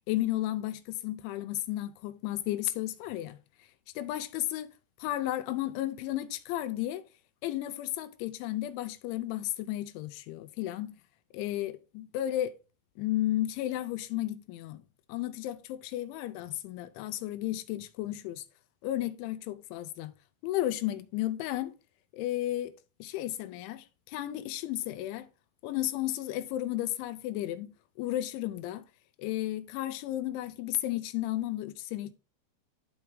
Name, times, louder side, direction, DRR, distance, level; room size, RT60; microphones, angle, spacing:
voice 1, 0.1-3.4 4.0-4.7 5.0-7.0 7.4-11.0 11.3-12.5 13.0-14.8 15.1-18.4 18.8-20.1 20.4-21.7 22.1-22.7 23.0-25.3 25.6-28.9 29.2-32.1, left 14 dB, 85° left, 3.0 m, -33 dB
12.0 x 4.4 x 3.5 m
omnidirectional pair, 5.5 m